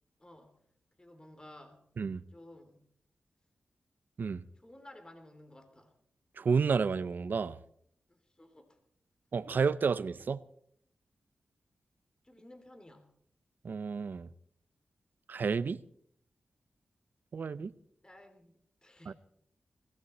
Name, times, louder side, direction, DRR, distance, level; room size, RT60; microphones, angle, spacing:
voice 1, 0.2-0.6 1.0-1.8 2.3-2.8 4.5-5.9 8.1-8.8 12.2-13.1 18.0-18.5 18.8-19.1, left 1 dB, 25° left, 3.0 m, -54 dB
voice 2, 6.4-7.6 9.3-10.4 13.6-14.3 15.3-15.8 17.3-17.7 19.1-19.2, right 5 dB, 65° right, 0.7 m, -31 dB
20.5 x 16.0 x 4.3 m
cardioid pair, 50°, 3 cm